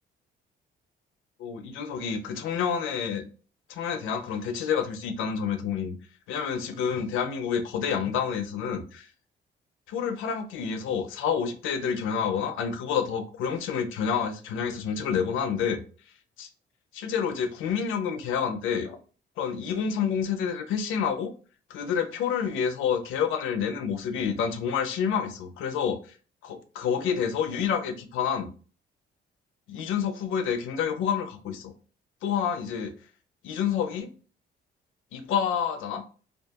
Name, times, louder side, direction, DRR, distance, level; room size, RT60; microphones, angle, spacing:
voice 1, 1.4-3.3 3.7-6.0 6.3-9.1 9.9-15.8 16.4-16.5 16.9-19.0 19.4-21.3 21.7-26.0 26.4-28.5 29.7-31.7 32.2-32.9 33.4-34.1 35.1-36.0, left 7 dB, 85° left, 0.5 m, -28 dB
2.4 x 2.3 x 2.6 m
cardioid pair, 90°, 20 cm